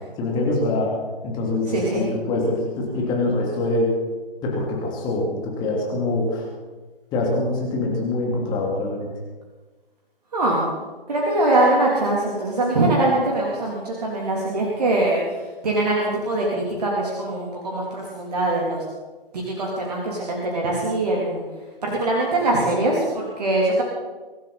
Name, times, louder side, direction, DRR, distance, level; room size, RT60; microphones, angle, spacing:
voice 1, 0.2-1.0 1.2-3.9 4.4-6.5 7.1-9.1, left 2 dB, 15° left, -2 dB, 2.9 m, -24 dB
voice 2, 1.7-2.1 10.3-10.7 11.1-15.2 15.6-18.8 19.3-21.4 21.8-23.8, right 2 dB, 45° right, -3 dB, 3.3 m, -22 dB
23.5 x 12.0 x 4.2 m, 1.3 s
figure-of-eight pair, 140°, 29 cm